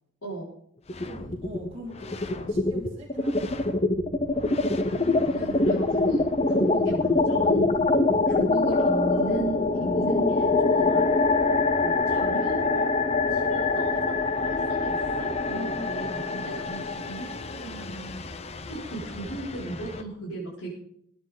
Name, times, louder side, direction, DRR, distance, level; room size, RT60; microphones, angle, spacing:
sound 1, 0.9-1.7 2.0-20.0, left 3 dB, 30° left, 0.7 m, -25 dB
voice 1, 1.0-3.7 6.5-6.8 15.5-16.2, left 1 dB, 25° right, -6 dB, 2.9 m, -42 dB
voice 2, 4.8-7.7 8.3-11.2 11.8-12.9 13.3-18.2 18.7-20.7, right 2 dB, 85° left, -9 dB, 6.1 m, -36 dB
23.5 x 9.8 x 3.9 m, 0.68 s
head